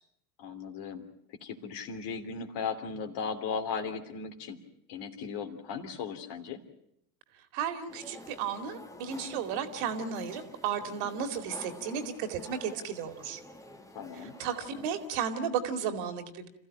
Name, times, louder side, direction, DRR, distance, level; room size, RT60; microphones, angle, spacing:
voice 1, 0.4-1.0 1.3-4.6 4.9-6.6 13.9-14.4, left 5 dB, 55° left, 6 dB, 3.1 m, -37 dB
voice 2, 7.5-13.4 14.1-16.5, right 7 dB, 60° right, 8 dB, 2.6 m, -34 dB
sound 1, 7.9-15.1, left 1 dB, 5° left, 1.8 m, -49 dB
27.5 x 15.0 x 9.1 m, 0.76 s
hypercardioid pair, 85°, 50 cm